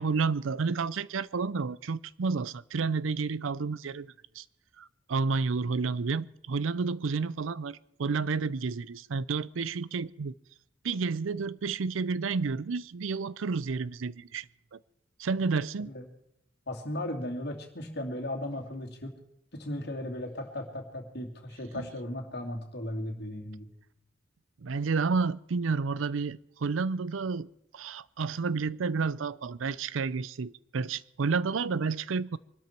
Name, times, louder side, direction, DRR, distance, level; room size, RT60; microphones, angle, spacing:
voice 1, 0.0-4.4 4.8-10.3 10.8-14.5 14.7-14.8 15.2-15.9 21.7-21.9 24.6-27.5 27.7-32.4, right 4 dB, 80° right, 0.5 m, -30 dB
voice 2, 16.7-19.1 19.5-23.7, left 1 dB, 55° left, 2.6 m, -36 dB
24.0 x 12.5 x 4.5 m
head